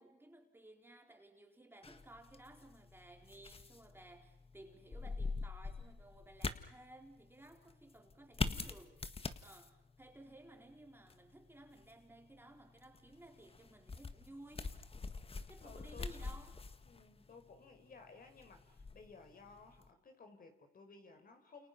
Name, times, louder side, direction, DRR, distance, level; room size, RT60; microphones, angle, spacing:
voice 1, 0.0-9.0 9.4-14.7 15.5-16.6, right 1 dB, 10° right, 4.0 m, -57 dB
sound 1, 1.8-19.9, left 4 dB, 30° left, 1.8 m, -46 dB
voice 2, 15.6-16.1 16.8-21.7, left 4 dB, 45° left, 4.8 m, -57 dB
29.5 x 28.5 x 6.0 m
cardioid pair, 90°, 20 cm